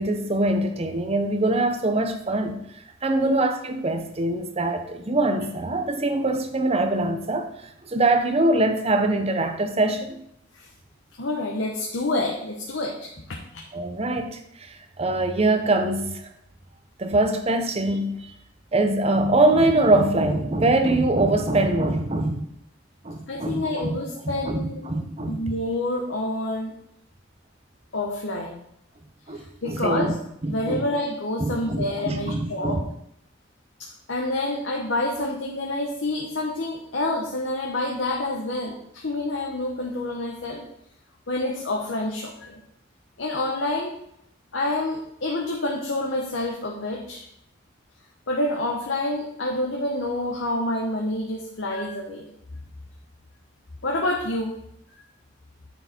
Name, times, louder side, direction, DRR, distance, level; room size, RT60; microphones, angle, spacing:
voice 1, 0.0-2.6 3.0-7.5 7.9-10.2 13.7-14.4 15.0-16.1 17.0-18.2 18.7-22.4 23.0-24.0 24.2-25.4 29.3-30.1 30.4-30.8 31.4-32.8, right 2 dB, 30° right, 0.8 m, -23 dB
voice 2, 11.2-13.6 23.3-24.9 25.3-26.7 27.9-28.6 29.6-30.1 30.5-32.8 33.8-40.6 41.3-42.6 43.2-44.0 44.5-47.2 48.3-52.3 53.8-54.5, left 2 dB, 75° left, 1.1 m, -28 dB
9.4 x 4.8 x 4.4 m
head